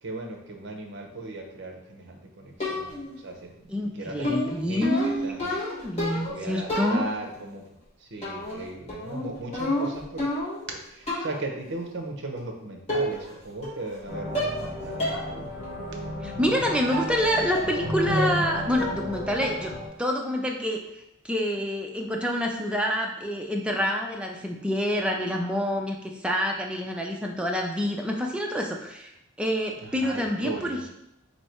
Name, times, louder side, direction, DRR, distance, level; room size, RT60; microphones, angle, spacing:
voice 1, 0.0-5.6 6.1-7.6 8.0-10.3 10.7-15.8 29.8-30.9, right 2 dB, 55° right, 2 dB, 0.7 m, -38 dB
sound 1, 2.6-3.2 4.2-6.4 6.7-7.4 8.2-8.6 8.9-10.7 11.1-11.4 12.4-12.5 12.9-13.4 13.6-14.0 14.3-14.7 15.0-15.2 15.6-15.7 16.9-17.1 17.5-17.9 18.2-18.5 18.8-19.1 19.4-19.8, left 1 dB, 30° left, 1.2 m, -30 dB
voice 2, 3.7-7.0 14.8-14.9 16.2-19.7 20.0-20.8 21.2-29.1 29.4-30.9, equal, 5° right, 1 dB, 0.4 m, -27 dB
sound 2, 14.1-19.9, equal, 70° left, 1.0 m, -33 dB
3.1 x 2.7 x 4.3 m, 0.84 s
head